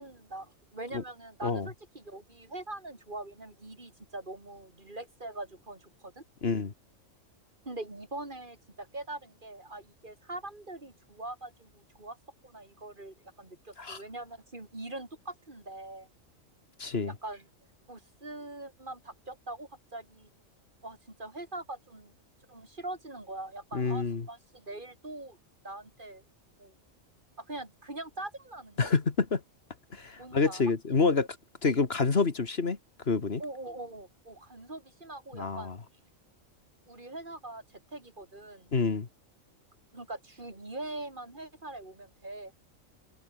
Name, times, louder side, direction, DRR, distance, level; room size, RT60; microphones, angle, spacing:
voice 1, 0.0-6.2 7.7-12.2 12.4-16.1 17.1-17.5 17.9-20.3 20.8-22.1 22.5-25.4 25.6-26.2 26.6-26.8 27.4-28.9 30.2-30.6 33.4-35.7 36.9-38.7 39.9-42.5, right 2 dB, 40° right, 4.2 m, -42 dB
voice 2, 6.4-6.7 13.8-14.0 16.8-17.1 23.7-24.3 28.8-29.4 29.9-31.3 31.6-32.8 33.1-33.4 35.3-35.8 38.7-39.1, left 4 dB, 50° left, 1.9 m, -27 dB
omnidirectional pair, 1.4 m